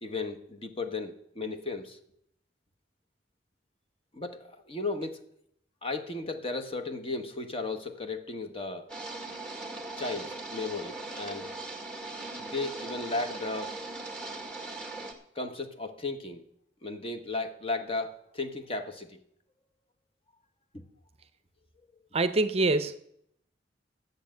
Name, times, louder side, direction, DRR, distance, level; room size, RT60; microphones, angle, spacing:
voice 1, 0.0-2.0 4.1-5.2 5.8-8.9 10.0-11.5 12.3-13.7 15.3-16.4 16.8-19.2 20.7-20.8, left 3 dB, 30° left, 7 dB, 1.0 m, -35 dB
sound 1, 8.9-15.1, right 2 dB, 5° left, 2.0 m, -39 dB
voice 2, 22.1-23.0, right 2 dB, 35° right, 11 dB, 0.6 m, -25 dB
12.0 x 7.9 x 7.5 m, 0.74 s
head